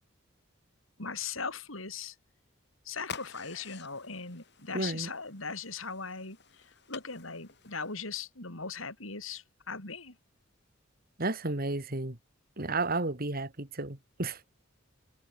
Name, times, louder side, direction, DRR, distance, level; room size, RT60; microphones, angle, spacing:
voice 1, 1.0-2.1 2.8-10.2, left 5 dB, 75° left, 6.8 m, -39 dB
sound 1, 3.0-8.2, left 6 dB, 55° left, 6.4 m, -49 dB
voice 2, 4.7-5.1 11.2-12.2 12.6-14.4, right 2 dB, 45° right, 2.4 m, -32 dB
head